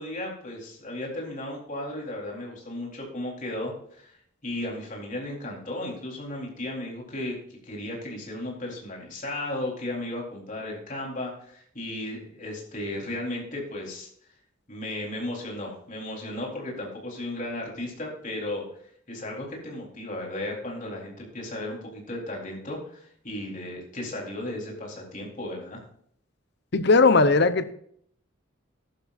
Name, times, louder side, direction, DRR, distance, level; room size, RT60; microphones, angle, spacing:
voice 1, 0.0-4.2 4.4-7.3 7.6-14.1 14.7-18.6 19.1-25.8, left 1 dB, 40° left, -2 dB, 4.0 m, -35 dB
voice 2, 26.7-27.7, left 3 dB, 55° left, 12 dB, 0.8 m, -18 dB
14.5 x 11.5 x 2.6 m, 0.63 s
head